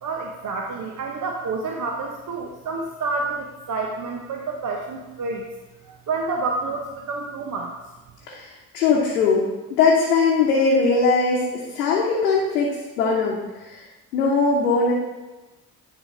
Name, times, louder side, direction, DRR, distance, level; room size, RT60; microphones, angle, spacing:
voice 1, 0.0-5.4 5.8-7.7, right 3 dB, 40° right, 1 dB, 0.8 m, -29 dB
voice 2, 8.3-9.5 9.8-13.9 14.1-14.9, left 4 dB, 80° left, -4 dB, 0.9 m, -20 dB
9.7 x 3.3 x 4.6 m, 1.1 s
figure-of-eight pair, 40°, 45 cm